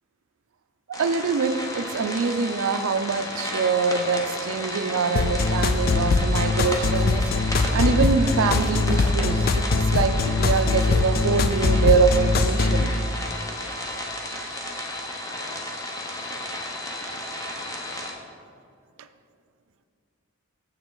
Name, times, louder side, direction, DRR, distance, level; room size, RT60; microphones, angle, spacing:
sound 1, 0.9-18.1, left 1 dB, 15° left, 0.8 m, -33 dB
voice 1, 0.9-7.2 7.7-12.9, right 5 dB, 80° right, 11 dB, 0.4 m, -24 dB
sound 2, 5.2-12.8, left 3 dB, 45° left, 0.3 m, -22 dB
7.2 x 7.0 x 3.9 m, 2.4 s
head